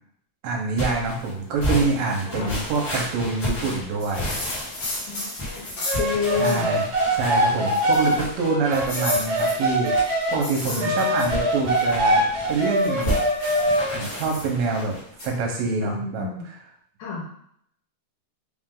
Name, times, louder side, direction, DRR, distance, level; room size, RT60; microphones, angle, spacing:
voice 1, 0.4-4.3 6.4-13.2 13.9-16.3, right 4 dB, 70° right, 0 dB, 2.0 m, -26 dB
sound 1, 0.7-15.1, left 1 dB, 40° left, 1.5 m, -33 dB
sound 2, 4.0-6.8 7.2-7.3 7.7-8.3 8.7-11.9 12.5-14.5 15.2-15.3, left 2 dB, 55° left, 2.2 m, -34 dB
voice 2, 5.1-6.8 7.5-7.7 8.1-8.3 10.7-11.1 15.8-16.5 17.0-17.3, left 5 dB, 80° left, -4 dB, 2.4 m, -31 dB
sound 3, 5.9-10.4 10.8-14.0, right 1 dB, 45° right, 1.6 m, -23 dB
5.0 x 2.5 x 3.7 m, 0.68 s
omnidirectional pair, 3.6 m